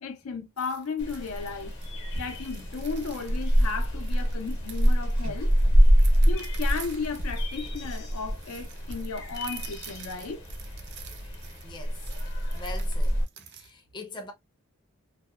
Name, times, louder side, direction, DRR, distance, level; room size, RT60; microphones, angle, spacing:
voice 1, 0.0-1.7 2.1-5.5 6.3-10.4, left 4 dB, 85° left, 0.6 m, -35 dB
sound 1, 0.6-13.7, right 9 dB, 50° right, 0.4 m, -49 dB
sound 2, 1.0-13.2, equal, 55° left, 0.8 m, -26 dB
sound 3, 3.6-8.9, equal, 85° right, 1.3 m, -47 dB
voice 2, 11.6-12.0 12.5-14.3, left 2 dB, 20° left, 0.5 m, -42 dB
2.7 x 2.1 x 2.3 m
head